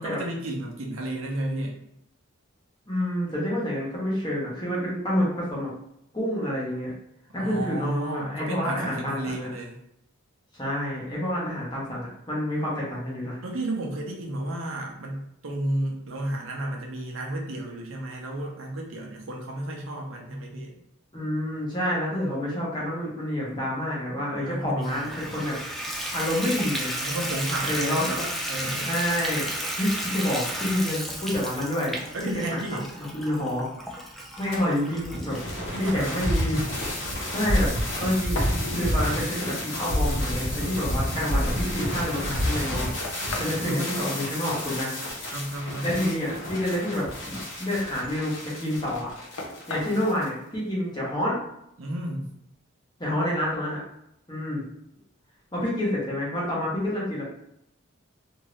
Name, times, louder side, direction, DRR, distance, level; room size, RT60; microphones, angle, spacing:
voice 1, 0.0-1.7 7.4-9.7 13.4-20.7 24.4-25.2 27.0-28.9 32.1-32.9 35.7-36.2 43.6-44.2 45.3-45.9 51.8-52.3, right 1 dB, 75° right, 0 dB, 0.7 m, -32 dB
voice 2, 2.9-5.7 6.1-6.9 7.3-9.5 10.5-13.4 21.1-25.6 26.1-27.0 27.6-28.3 28.9-31.9 32.3-32.6 33.0-33.7 34.4-35.4 35.8-36.6 37.3-38.5 38.7-42.9 43.4-45.0 45.8-49.1 49.7-51.4 53.0-53.8 54.3-54.6 55.5-57.2, left 1 dB, 20° left, -6 dB, 1.0 m, -28 dB
Water tap faucet / Bathtub (filling or washing), 24.8-39.2 39.8-39.9 40.4-40.5 40.8-40.9, equal, ahead, 0.3 m, -34 dB
sound 1, 34.3-36.4 37.3-37.9 38.4-39.6 40.3-40.4 41.0-45.3 45.9-47.6 48.0-48.6 49.0-49.1 49.4-50.0, left 2 dB, 85° left, 0.6 m, -41 dB
sound 2, 35.0-50.3, equal, 65° left, 1.1 m, -29 dB
2.7 x 2.6 x 3.1 m, 0.77 s
head